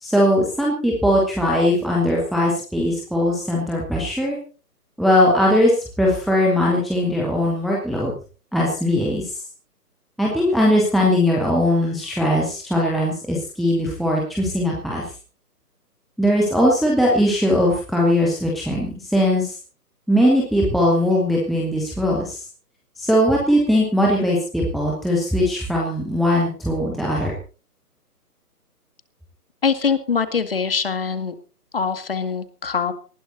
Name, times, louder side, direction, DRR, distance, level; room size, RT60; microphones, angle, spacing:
voice 1, 0.0-4.4 5.0-8.1 8.5-9.3 10.2-15.1 16.2-19.6 20.1-22.4 23.0-27.3, left 1 dB, ahead, -3 dB, 0.7 m, -20 dB
voice 2, 29.6-31.3 31.7-32.9, left 6 dB, 35° left, 10 dB, 2.1 m, -23 dB
19.0 x 15.0 x 4.0 m, 0.39 s
hypercardioid pair, 175°, 47 cm